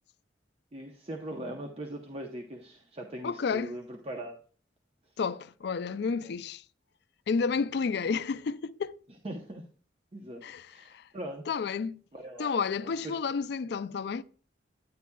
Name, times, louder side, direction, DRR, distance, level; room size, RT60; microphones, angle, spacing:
voice 1, 0.7-4.4 6.2-6.4 8.0-8.2 9.2-9.6 10.1-11.5 12.1-13.1, right 1 dB, 35° right, 0.7 m, -41 dB
voice 2, 3.2-3.8 5.2-6.6 7.3-9.0 10.4-11.0 11.5-12.0 12.4-14.2, left 5 dB, 65° left, 0.4 m, -31 dB
10.0 x 9.4 x 2.2 m
head